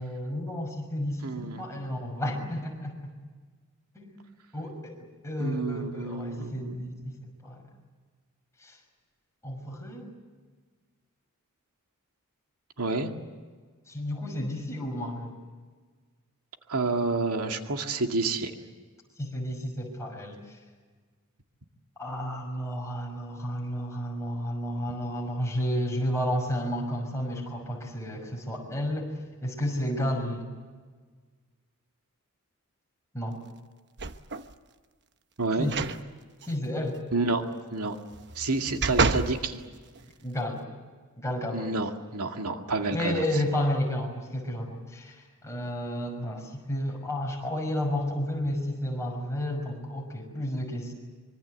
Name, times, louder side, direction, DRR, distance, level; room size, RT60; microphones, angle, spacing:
voice 1, 0.0-3.0 3.9-4.1 4.5-7.6 8.6-8.8 9.4-10.1 13.9-15.4 19.2-20.6 22.0-30.5 33.1-33.4 35.6-35.8 36.5-37.0 40.2-40.7 41.2-41.7 42.9-50.9, equal, 15° left, 1 dB, 6.0 m, -32 dB
voice 2, 1.2-1.6 5.4-7.1 12.8-13.1 16.7-18.5 35.4-35.7 37.1-37.4 37.7-38.0 38.4-39.6 41.5-43.2, right 3 dB, 90° right, 4 dB, 2.1 m, -29 dB
sound 1, 34.0-34.5 35.6-36.0 36.4-36.5 38.1-39.4 40.0-40.1, right 4 dB, 50° right, 1.1 m, -28 dB
25.0 x 24.0 x 8.0 m, 1.5 s
head